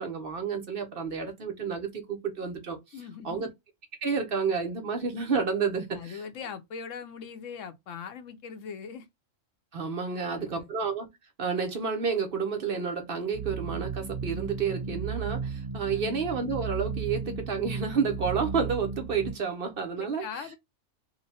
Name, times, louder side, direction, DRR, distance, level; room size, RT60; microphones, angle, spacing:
voice 1, 0.0-2.8 3.2-3.5 4.0-6.2 9.7-11.1 11.4-20.2, right 5 dB, 50° right, 0.9 m, -30 dB
voice 2, 2.9-3.4 5.9-9.1 10.1-10.7 15.9-16.1 20.0-20.6, left 6 dB, 75° left, 1.1 m, -41 dB
sound 1, 13.3-19.3, right 5 dB, 25° right, 1.0 m, -35 dB
3.0 x 2.2 x 4.0 m
omnidirectional pair, 1.3 m